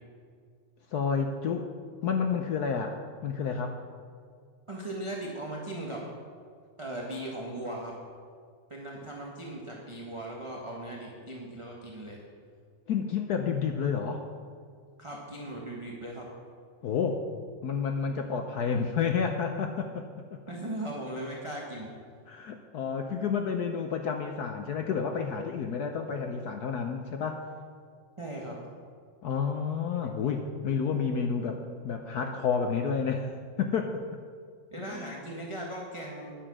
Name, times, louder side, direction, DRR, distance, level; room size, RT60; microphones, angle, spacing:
voice 1, 0.9-1.7 2.0-3.8 12.9-14.3 16.8-17.3 17.6-20.4 22.3-27.4 29.2-34.0 34.8-35.1, left 6 dB, 65° left, 5 dB, 1.0 m, -30 dB
voice 2, 4.7-6.0 6.8-7.9 8.7-12.2 15.0-16.3 20.5-21.9 28.2-28.6 34.7-36.4, right 1 dB, 20° right, -3 dB, 1.2 m, -38 dB
11.0 x 8.7 x 6.2 m, 2.1 s
omnidirectional pair, 2.2 m